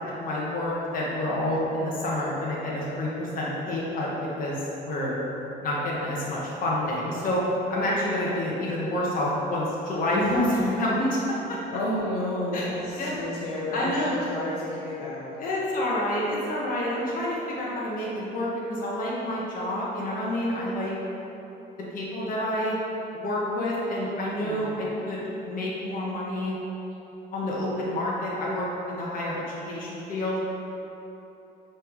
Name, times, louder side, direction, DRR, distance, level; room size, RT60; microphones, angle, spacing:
voice 1, 0.0-4.1 4.4-5.2 5.6-7.4 7.7-11.6 12.5-12.6 13.0-13.1 13.7-14.1 15.4-20.9 21.9-22.8 23.1-25.2 25.5-26.5 27.3-30.4, left 1 dB, 55° left, -5 dB, 1.3 m, -28 dB
voice 2, 11.7-15.3 24.4-24.8, left 1 dB, 75° left, -7 dB, 1.2 m, -31 dB
5.9 x 3.4 x 4.7 m, 3.0 s
cardioid pair, 110°, 17 cm